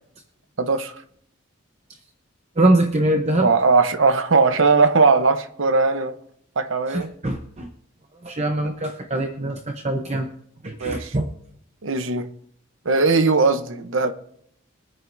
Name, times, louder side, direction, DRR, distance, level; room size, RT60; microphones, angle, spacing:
voice 1, 0.6-1.0 3.4-6.2 6.6-7.1 10.8-11.1 11.8-12.3 12.8-14.1, right 4 dB, 70° right, 0.9 m, -19 dB
voice 2, 2.6-3.5 6.9-7.7 8.2-10.3 10.6-11.3, right 1 dB, 35° right, 0.8 m, -22 dB
24.0 x 9.2 x 2.6 m
head